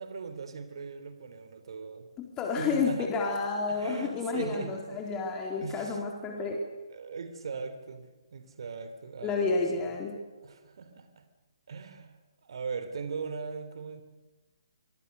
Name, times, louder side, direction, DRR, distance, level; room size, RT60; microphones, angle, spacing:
voice 1, 0.0-2.1 2.6-3.1 3.7-5.1 5.6-6.0 6.9-8.1 8.3-10.0 10.4-11.3 11.7-12.1 12.4-14.0, right 5 dB, 65° right, 10 dB, 3.3 m, -40 dB
voice 2, 2.2-6.6 9.2-10.2, left 4 dB, 20° left, 1 dB, 4.1 m, -30 dB
26.0 x 24.5 x 6.8 m, 1.2 s
hypercardioid pair, 140°, 3 cm